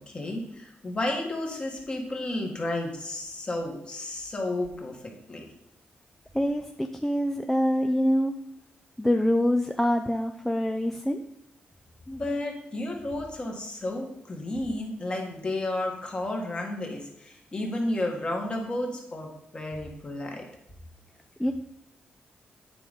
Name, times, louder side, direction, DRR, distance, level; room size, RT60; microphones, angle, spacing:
voice 1, 0.1-5.4 12.1-20.4, left 1 dB, 30° left, 1 dB, 1.7 m, -32 dB
voice 2, 6.3-8.3 9.0-11.2 21.4-21.5, equal, 5° left, 5 dB, 0.4 m, -25 dB
9.1 x 4.0 x 5.2 m, 0.80 s
cardioid pair, 120°, 4 cm